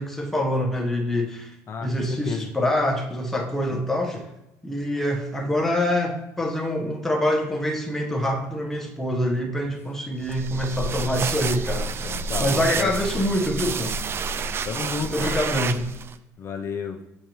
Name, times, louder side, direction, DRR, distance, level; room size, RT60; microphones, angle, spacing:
voice 1, 0.0-1.6 1.8-4.3 4.6-14.0 15.1-15.9, left 1 dB, 5° left, 0 dB, 1.1 m, -25 dB
voice 2, 1.7-2.5 12.0-12.9 13.1-13.5 14.6-15.4 16.4-17.0, left 6 dB, 40° left, 3 dB, 0.7 m, -32 dB
sound 1, 10.2-16.2, right 4 dB, 35° right, 0.4 m, -29 dB
6.7 x 6.3 x 3.1 m, 0.88 s
cardioid pair, 110°, 7 cm